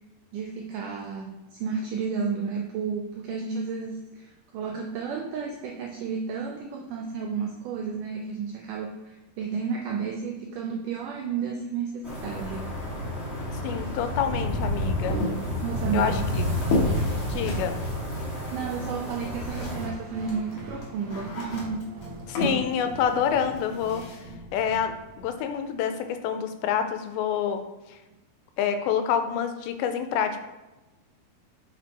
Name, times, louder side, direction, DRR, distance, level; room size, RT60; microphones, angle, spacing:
voice 1, 0.3-12.7 15.6-16.2 18.1-18.2 18.5-21.9, right 6 dB, 85° right, 1 dB, 1.8 m, -32 dB
sound 1, 12.0-19.9, equal, 10° right, 0.9 m, -30 dB
voice 2, 13.6-15.2 15.9-16.4 17.2-17.8 22.3-24.0 24.5-27.6 27.9-28.0 28.6-30.4, left 8 dB, 90° left, 8 dB, 2.5 m, -27 dB
sound 2, 15.1-20.0 20.2-24.2, left 2 dB, 65° left, 1.4 m, -33 dB
sound 3, 19.7-25.7, right 1 dB, 70° right, 1.5 m, -42 dB
5.9 x 4.3 x 4.1 m, 1.1 s
omnidirectional pair, 4.3 m